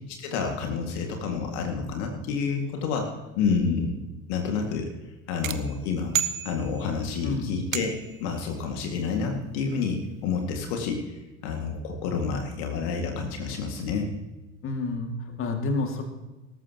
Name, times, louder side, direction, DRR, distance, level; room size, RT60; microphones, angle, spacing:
voice 1, 0.1-3.9 4.3-4.9 5.3-6.1 6.4-7.9 8.2-14.1, left 5 dB, 55° left, 3 dB, 2.1 m, -29 dB
sound 1, 5.4-7.1 7.7-8.3, right 8 dB, 80° right, 0.8 m, -31 dB
voice 2, 7.2-7.6 14.6-16.0, left 3 dB, 30° left, 4 dB, 2.2 m, -29 dB
18.5 x 14.0 x 2.9 m, 1.1 s
figure-of-eight pair, 75°, 39 cm